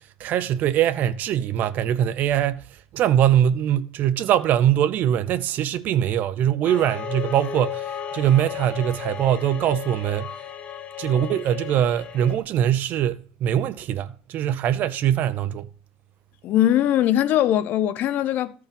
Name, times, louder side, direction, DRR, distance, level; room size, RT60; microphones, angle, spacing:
voice 1, 0.0-2.7 2.9-10.4 11.0-15.7, right 10 dB, 50° right, 0.6 m, -22 dB
sound 1, 6.6-12.4, left 8 dB, 35° left, 1.7 m, -34 dB
voice 2, 16.4-18.5, left 12 dB, 50° left, 0.9 m, -20 dB
14.0 x 4.8 x 5.3 m
cardioid pair, 130°, 4 cm